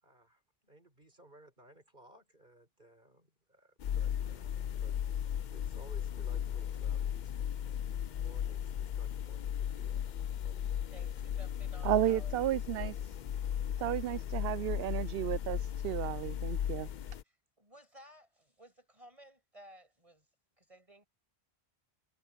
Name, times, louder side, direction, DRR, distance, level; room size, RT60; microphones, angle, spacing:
voice 1, 0.0-5.0 5.3-7.3 8.2-10.1 10.4-10.6 11.0-11.3, right 2 dB, 50° right, 5.0 m, -59 dB
sound 1, 3.8-17.2, left 9 dB, 55° left, 0.6 m, -36 dB
voice 2, 10.9-12.4 13.3-13.5 17.2-20.3 20.6-21.1, right 1 dB, 30° right, 6.3 m, -56 dB
voice 3, 11.8-13.1 13.8-16.9, right 12 dB, 70° right, 0.8 m, -33 dB
omnidirectional pair, 1.1 m